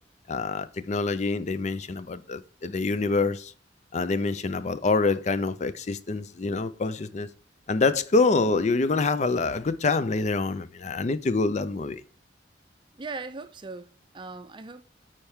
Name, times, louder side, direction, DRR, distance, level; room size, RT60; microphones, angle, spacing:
voice 1, 0.3-3.5 3.9-7.3 7.7-12.0, left 3 dB, 40° left, 0.4 m, -26 dB
voice 2, 13.0-14.8, right 3 dB, 25° right, 0.5 m, -39 dB
9.0 x 4.4 x 3.5 m
head